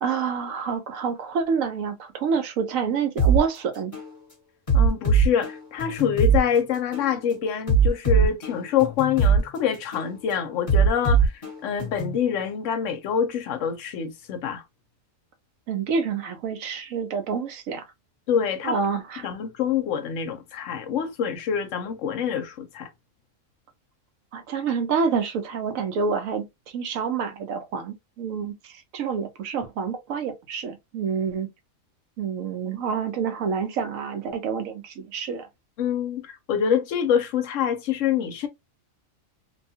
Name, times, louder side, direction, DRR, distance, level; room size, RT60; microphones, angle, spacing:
voice 1, 0.0-3.9 15.7-17.8 18.6-19.3 24.3-26.5 26.7-31.5 32.2-35.5, right 6 dB, 70° right, 1.0 m, -28 dB
sound 1, 3.2-3.4 3.9-4.1 4.7-6.4 6.9-7.1 7.7-9.4 9.9-10.1 10.7-12.2, right 4 dB, 25° left, 1.3 m, -20 dB
voice 2, 4.7-14.6 18.3-18.8 19.2-22.9 35.8-38.5, left 8 dB, 65° left, 0.9 m, -26 dB
2.7 x 2.3 x 2.7 m
omnidirectional pair, 1.5 m